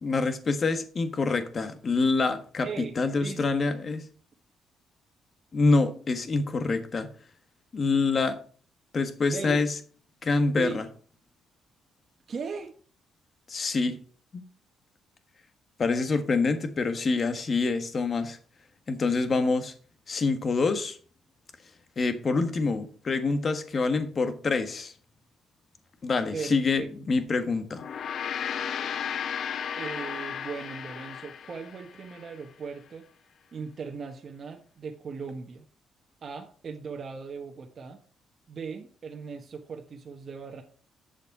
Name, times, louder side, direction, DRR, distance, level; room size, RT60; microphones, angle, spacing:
voice 1, 0.0-4.0 5.5-7.1 7.7-8.4 8.9-9.7 10.2-10.8 13.5-14.0 14.3-14.4 15.8-18.4 18.9-19.7 20.1-21.0 22.0-24.9 26.0-27.9, left 3 dB, 40° left, 1.4 m, -26 dB
voice 2, 2.6-3.7 9.3-9.6 10.5-10.8 12.3-12.7 26.3-26.9 29.8-33.0 33.5-35.6 36.2-38.0 38.5-40.6, right 5 dB, 45° right, 1.3 m, -38 dB
Gong, 27.7-32.3, left 8 dB, 60° left, 0.6 m, -34 dB
8.3 x 6.8 x 4.7 m
cardioid pair, 90°, 0 cm